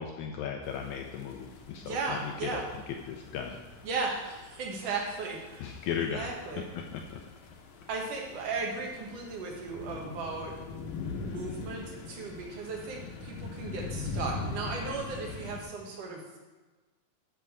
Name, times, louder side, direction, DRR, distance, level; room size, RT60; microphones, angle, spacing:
voice 1, 0.0-3.6 5.6-6.3 6.7-7.2, left 7 dB, 85° left, 3 dB, 1.7 m, -36 dB
sound 1, 0.6-15.6, left 3 dB, 70° left, 1.9 m, -42 dB
voice 2, 1.8-2.6 3.8-5.6 5.9-6.6 7.9-10.5 11.2-16.4, right 4 dB, 55° right, -1 dB, 2.3 m, -36 dB
10.5 x 4.7 x 6.6 m, 1.2 s
omnidirectional pair, 4.0 m